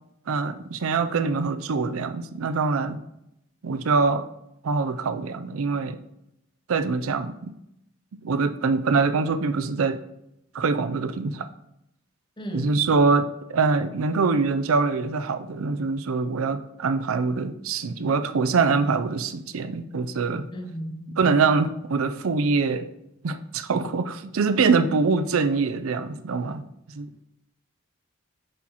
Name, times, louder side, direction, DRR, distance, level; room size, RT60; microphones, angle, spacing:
voice 1, 0.3-3.0 3.6-4.3 4.6-6.0 6.7-7.5 8.2-10.0 10.5-11.5 12.5-20.5 21.2-22.9 23.2-27.1, right 4 dB, 85° right, 10 dB, 0.5 m, -24 dB
voice 2, 12.4-12.8 20.5-21.1, equal, 20° left, 4 dB, 0.8 m, -34 dB
7.7 x 6.1 x 3.0 m, 0.82 s
head